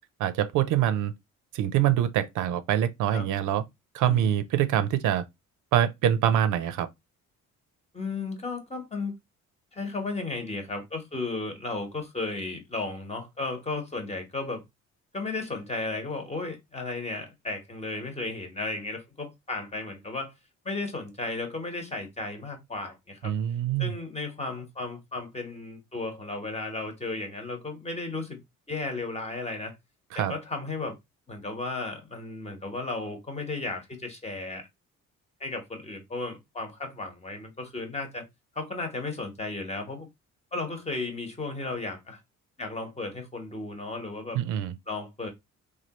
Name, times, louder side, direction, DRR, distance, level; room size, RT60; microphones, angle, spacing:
voice 1, 0.2-1.1 1.5-3.6 3.9-5.2 5.7-6.9 23.2-23.9 30.1-30.3 44.3-44.7, right 11 dB, 85° right, 0.5 m, -25 dB
voice 2, 4.0-4.3 7.9-9.1 9.7-14.6 15.1-20.3 20.6-23.3 23.8-28.4 28.7-29.7 30.1-31.0 31.3-34.7 35.4-38.2 38.5-40.1 40.5-42.2 42.6-44.4 44.9-45.3, left 3 dB, 20° left, 1.0 m, -34 dB
3.1 x 2.3 x 2.8 m
cardioid pair, 90°, 30 cm